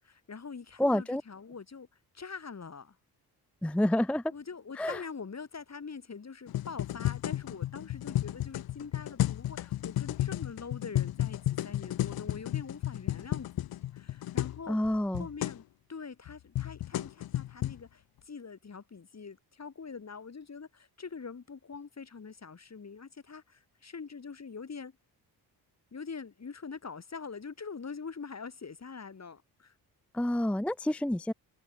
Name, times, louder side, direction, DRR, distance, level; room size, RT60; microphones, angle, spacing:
voice 1, 0.0-3.0 4.3-15.6 15.9-25.0 25.9-29.8, left 5 dB, 40° left, 6.9 m, -44 dB
voice 2, 0.8-1.2 3.6-4.3 4.8-5.0 14.7-15.3 30.1-31.3, left 1 dB, 5° left, 0.6 m, -28 dB
sound 1, 6.5-14.6 14.8-14.9 15.1-15.6 16.3-17.8, left 13 dB, 60° left, 0.7 m, -33 dB
cardioid pair, 85°, 42 cm